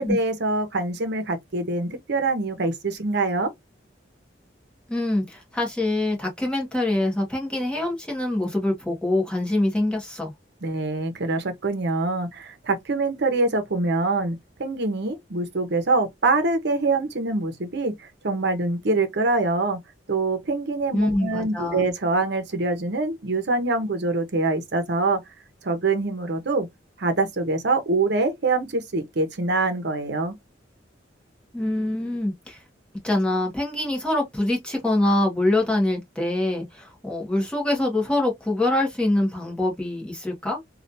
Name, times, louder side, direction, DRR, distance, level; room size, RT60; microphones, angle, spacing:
voice 1, 0.0-3.5 10.6-19.8 20.1-25.2 25.6-26.7 27.0-30.3, right 3 dB, 65° right, 0.8 m, -24 dB
voice 2, 4.9-10.3 20.9-21.9 31.5-32.6 33.0-40.6, left 1 dB, 5° left, 1.2 m, -24 dB
3.2 x 2.4 x 2.6 m
head